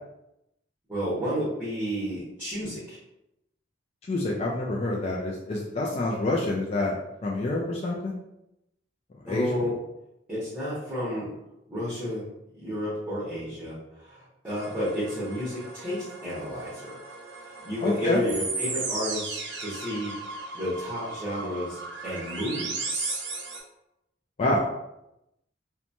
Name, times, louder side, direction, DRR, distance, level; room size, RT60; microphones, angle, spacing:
voice 1, 0.9-3.0 9.2-9.7 10.3-11.3 11.7-12.3 12.6-16.9 17.6-20.1 20.5-23.2, equal, 10° right, -12 dB, 1.0 m, -31 dB
voice 2, 4.1-7.0 7.2-8.1 9.2-9.5 17.8-18.2 24.4-24.7, left 2 dB, 35° left, -3 dB, 0.3 m, -27 dB
sound 1, 14.5-23.6, right 3 dB, 75° right, 0.6 m, -36 dB
2.9 x 2.2 x 2.5 m, 0.86 s
head